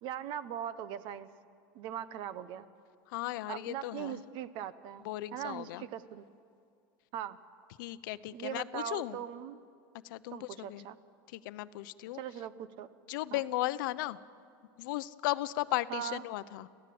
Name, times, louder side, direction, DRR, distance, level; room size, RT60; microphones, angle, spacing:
voice 1, 0.0-1.3 1.7-2.7 3.5-6.2 7.1-7.4 8.3-9.6 10.3-11.0 12.1-12.9 13.3-13.4 15.9-16.2, right 10 dB, 45° right, 15 dB, 0.9 m, -40 dB
voice 2, 3.1-4.2 5.0-5.8 7.8-9.2 10.0-10.8 11.3-12.2 13.1-14.2 14.8-16.7, left 16 dB, 70° left, 15 dB, 0.7 m, -36 dB
27.5 x 15.5 x 7.8 m, 2.4 s
supercardioid pair, 150°, 11 cm